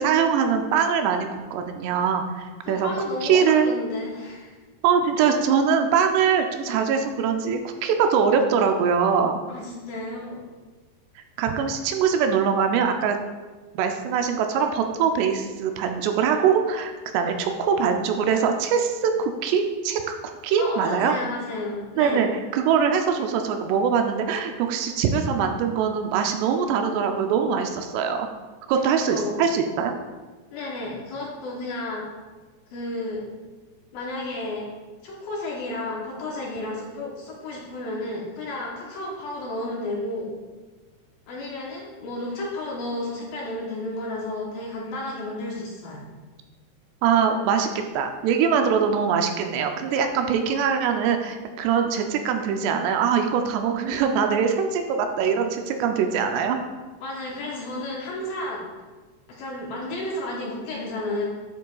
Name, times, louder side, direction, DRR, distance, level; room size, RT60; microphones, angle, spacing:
voice 1, 0.0-2.9 3.2-3.7 4.8-9.4 11.4-13.2 13.8-20.2 20.4-21.2 22.0-22.3 22.5-28.3 28.7-29.9 47.0-56.6, right 6 dB, 80° right, 5 dB, 2.6 m, -22 dB
voice 2, 2.6-4.6 9.5-10.4 20.6-22.2 29.0-29.4 30.5-32.1 32.7-33.3 33.9-34.7 35.0-40.3 41.3-46.0 57.0-58.6 59.3-61.2, left 2 dB, 75° left, -3 dB, 2.3 m, -32 dB
9.3 x 7.6 x 2.3 m, 1.3 s
omnidirectional pair, 4.9 m